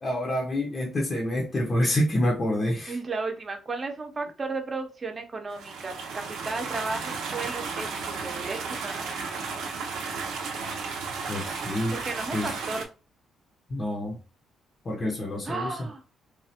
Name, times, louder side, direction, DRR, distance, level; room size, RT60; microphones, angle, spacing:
voice 1, 0.0-3.0 11.3-12.0 12.3-12.5 13.7-14.2 14.8-15.8, left 1 dB, 35° left, -2 dB, 0.7 m, -27 dB
voice 2, 2.9-9.1 11.9-12.9 15.4-16.0, right 3 dB, 35° right, 4 dB, 0.7 m, -34 dB
sound 1, 5.5-12.8, right 4 dB, 85° right, 0.6 m, -34 dB
3.1 x 2.4 x 2.8 m, 0.33 s
cardioid pair, 90°, 0 cm